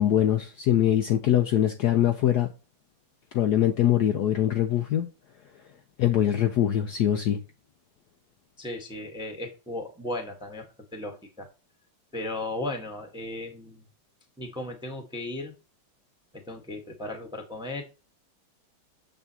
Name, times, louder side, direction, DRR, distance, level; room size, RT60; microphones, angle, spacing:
voice 1, 0.0-2.5 3.3-5.1 6.0-7.4, left 11 dB, 70° left, 1.0 m, -23 dB
voice 2, 8.6-11.5 12.1-13.8 14.4-15.5 16.3-17.8, left 2 dB, 5° right, 0.9 m, -36 dB
7.1 x 7.0 x 2.8 m
omnidirectional pair, 2.2 m